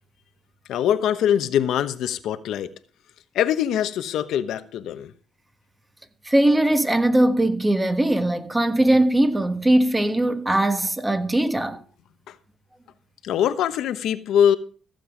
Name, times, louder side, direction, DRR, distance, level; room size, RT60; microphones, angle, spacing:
voice 1, 0.7-2.7 3.3-5.1 13.2-14.6, left 9 dB, 80° left, 1.0 m, -22 dB
voice 2, 6.2-11.8, right 1 dB, 15° right, 1.4 m, -20 dB
15.0 x 7.8 x 5.0 m
cardioid pair, 90°, 0 cm